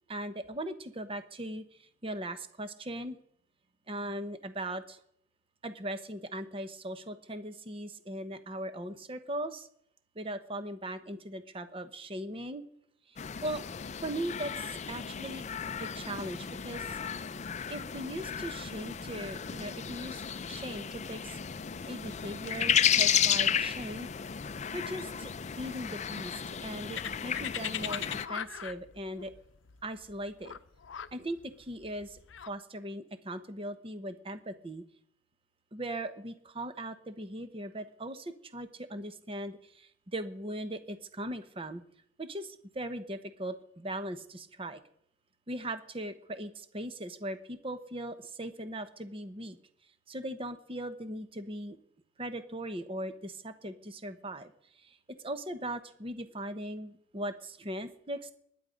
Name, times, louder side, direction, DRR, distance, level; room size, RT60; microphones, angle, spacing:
voice 1, 0.1-3.2 3.9-5.0 5.6-9.7 10.1-12.6 13.1-13.2 13.4-13.6 14.0-15.4 15.8-17.0 17.7-21.4 21.9-24.1 24.7-29.3 29.8-30.5 31.1-32.2 32.5-34.8 35.7-41.8 42.2-44.8 45.5-49.6 50.1-51.8 52.2-58.3, right 1 dB, 30° right, 10 dB, 1.0 m, -39 dB
sound 1, 13.2-28.3, left 8 dB, 35° left, 0.5 m, -33 dB
sound 2, 27.0-32.5, left 9 dB, 80° left, 0.6 m, -39 dB
21.0 x 9.6 x 5.2 m, 0.69 s
head